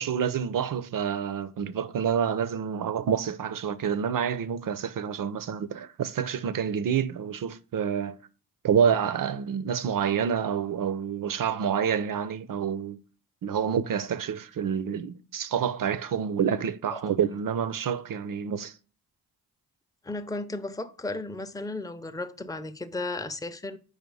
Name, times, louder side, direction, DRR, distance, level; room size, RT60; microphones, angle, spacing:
voice 1, 0.0-8.2 8.6-13.0 13.4-18.7, right 7 dB, 55° right, 0.6 m, -28 dB
voice 2, 20.0-23.8, left 2 dB, 10° left, 0.6 m, -34 dB
5.0 x 4.1 x 4.6 m
supercardioid pair, 45°, 39 cm